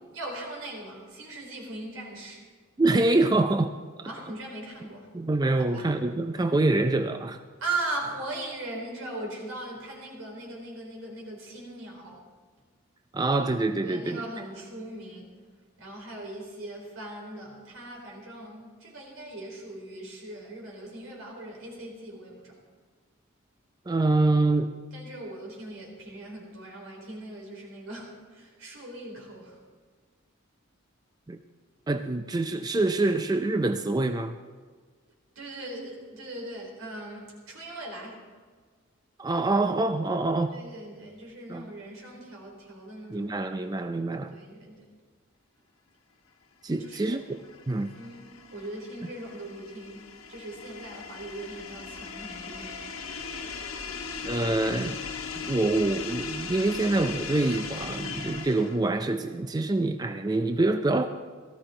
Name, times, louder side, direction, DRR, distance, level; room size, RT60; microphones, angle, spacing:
voice 1, 0.1-2.4 4.0-5.1 5.6-5.9 7.6-12.2 13.8-15.4 15.8-22.6 24.9-29.6 35.4-38.3 40.5-43.3 44.3-44.9 46.8-47.2 48.0-52.7, right 2 dB, 80° right, -1 dB, 4.2 m, -39 dB
voice 2, 2.8-4.1 5.1-7.4 13.1-14.2 23.9-24.7 31.3-31.4 31.9-34.4 39.2-40.6 41.5-41.7 43.1-44.3 46.6-47.2 47.7-47.9 54.2-55.0 55.4-61.1, right 2 dB, 20° right, 7 dB, 0.4 m, -25 dB
sound 1, 47.0-58.9, left 5 dB, 85° left, 1.3 m, -38 dB
17.5 x 14.0 x 3.8 m, 1.5 s
head